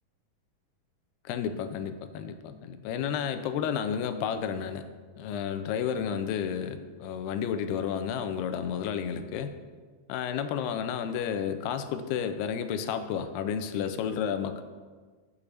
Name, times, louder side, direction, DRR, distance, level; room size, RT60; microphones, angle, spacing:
voice 1, 1.3-4.8 5.2-9.6 10.1-14.6, left 8 dB, 90° left, 9 dB, 2.6 m, -31 dB
7.0 x 6.9 x 6.3 m, 1.5 s
omnidirectional pair, 4.5 m